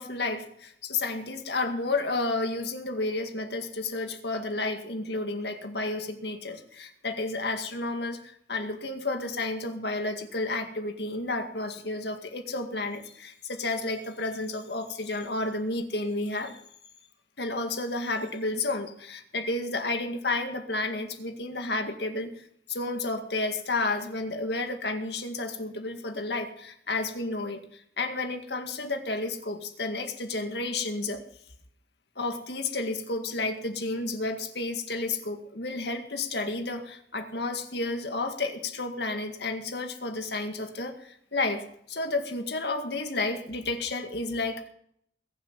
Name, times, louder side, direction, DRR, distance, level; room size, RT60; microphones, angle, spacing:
voice 1, 0.0-8.2 8.5-16.6 17.4-31.2 32.2-44.7, left 2 dB, 65° left, 6 dB, 2.0 m, -31 dB
21.5 x 7.2 x 7.5 m, 0.69 s
head